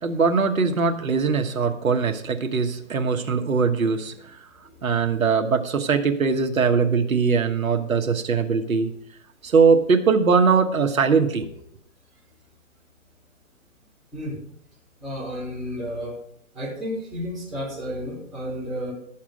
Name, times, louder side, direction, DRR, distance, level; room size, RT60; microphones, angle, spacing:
voice 1, 0.0-4.4 4.8-8.9 9.4-11.5, right 5 dB, 90° right, 5 dB, 1.3 m, -21 dB
voice 2, 15.0-16.2 16.5-18.9, equal, ahead, -5 dB, 3.1 m, -31 dB
11.5 x 7.2 x 5.0 m, 0.68 s
hypercardioid pair, 145°, 40 cm